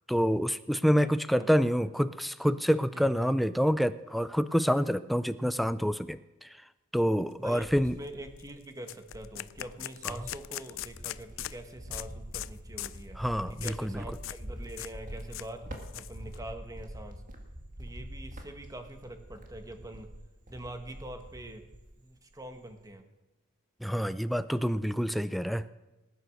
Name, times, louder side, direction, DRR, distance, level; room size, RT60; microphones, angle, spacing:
voice 1, 0.1-6.6 6.9-8.0 10.0-10.2 13.2-14.0 23.8-25.7, equal, ahead, 13 dB, 0.4 m, -27 dB
voice 2, 1.0-1.5 2.9-3.2 7.4-13.2 13.5-17.2 17.8-20.1 20.5-21.7 22.0-23.1, right 1 dB, 15° right, 7 dB, 1.3 m, -44 dB
Cricket, 7.2-8.6 9.1-22.0 22.3-22.9, equal, 35° right, 2.1 m, -45 dB
sound 1, 7.5-7.6 7.9-8.1 8.4-8.5 8.9-11.6 11.9-12.1 12.3-12.5 12.8-13.0 13.6-13.8 14.1-14.4 14.7-14.9 15.2-16.4, left 14 dB, 60° left, 0.4 m, -40 dB
19.5 x 9.3 x 6.4 m, 1.1 s
head